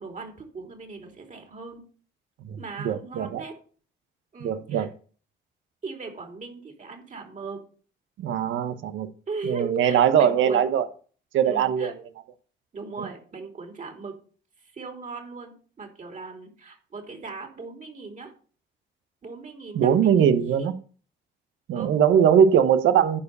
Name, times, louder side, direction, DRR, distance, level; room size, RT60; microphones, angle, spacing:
voice 1, 0.0-1.8 2.6-3.6 4.3-4.9 5.8-7.6 9.3-10.7 11.4-11.9 12.7-14.1 14.6-18.3 19.2-20.7 21.7-21.9, right 4 dB, 40° right, 3.2 m, -38 dB
voice 2, 2.8-3.4 4.4-4.9 8.2-9.1 9.5-10.9 11.3-11.9 19.7-20.7 21.7-23.2, right 8 dB, 80° right, 1.0 m, -21 dB
10.0 x 4.9 x 6.7 m
cardioid pair, 90°, 20 cm